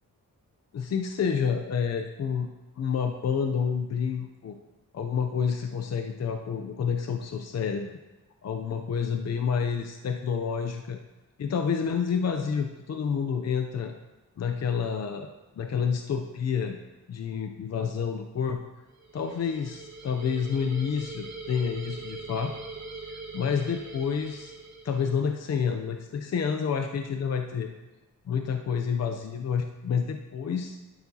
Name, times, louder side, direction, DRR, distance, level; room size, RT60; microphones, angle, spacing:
voice 1, 0.7-2.5 2.8-4.6 4.9-7.9 8.4-11.0 11.4-13.9 14.4-15.3 15.6-16.8 17.1-18.6 19.1-22.5 22.9-23.1 23.3-24.5 24.8-27.7 28.3-30.8, left 6 dB, 55° left, 5 dB, 0.5 m, -29 dB
sound 1, 18.9-25.3, right 3 dB, 60° right, 1.7 m, -42 dB
12.0 x 7.0 x 2.8 m, 1.1 s
wide cardioid pair, 95°, 32 cm